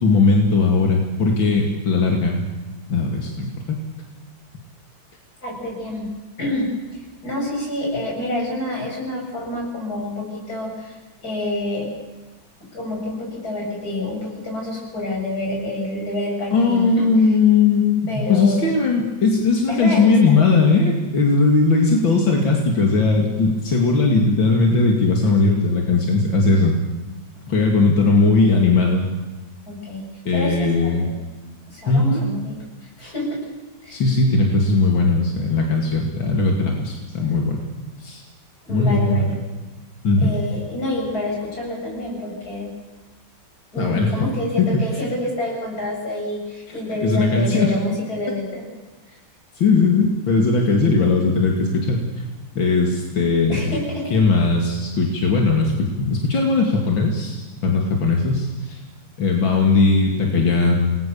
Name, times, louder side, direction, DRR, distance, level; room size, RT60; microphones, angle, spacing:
voice 1, 0.0-2.4 2.9-3.5 16.5-26.7 27.5-29.0 30.2-31.0 31.9-32.2 33.9-37.6 38.0-38.2 38.7-39.3 40.0-40.3 43.8-44.2 44.6-44.7 47.0-47.7 49.6-52.2 52.5-53.8 54.1-58.8 59.2-61.0, left 3 dB, 85° left, 1 dB, 3.2 m, -18 dB
voice 2, 5.4-6.1 6.4-11.9 12.7-17.3 18.1-18.8 19.7-20.4 29.7-30.0 30.3-31.2 31.7-33.4 33.8-34.0 38.6-39.4 40.2-42.7 43.7-48.6 49.1-49.2 49.8-49.9 53.5-54.2, left 1 dB, 50° left, -1 dB, 8.6 m, -28 dB
28.5 x 20.0 x 7.1 m, 1.2 s
omnidirectional pair, 2.1 m